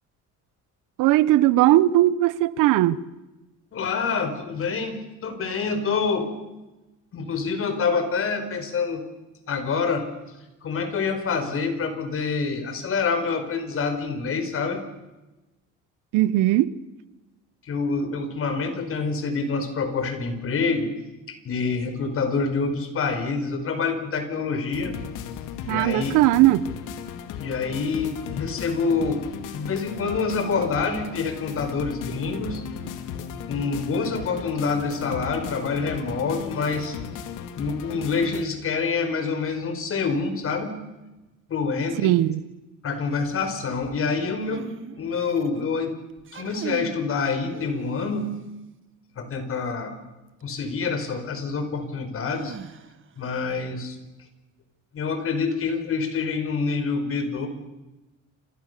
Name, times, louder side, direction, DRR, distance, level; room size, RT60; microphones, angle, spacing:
voice 1, 1.0-3.0 16.1-16.7 25.7-26.7 42.0-42.4, right 15 dB, 85° right, 1.2 m, -19 dB
voice 2, 3.7-6.3 7.1-9.0 9.5-10.1 10.6-14.8 17.7-20.9 21.3-24.9 25.7-26.2 27.4-32.6 33.5-37.0 37.6-40.8 41.5-42.1 42.8-45.9 46.3-48.3 49.2-49.9 50.4-52.5 53.2-54.0 54.9-57.5, left 4 dB, 45° left, 5.2 m, -26 dB
sound 1, 24.7-38.4, left 8 dB, 80° left, 2.5 m, -36 dB
sound 2, 44.4-45.6 46.2-47.1 47.5-48.4 50.4-50.5 52.3-53.2, right 8 dB, 40° right, 1.7 m, -39 dB
29.0 x 28.0 x 6.9 m
cardioid pair, 120°, 31 cm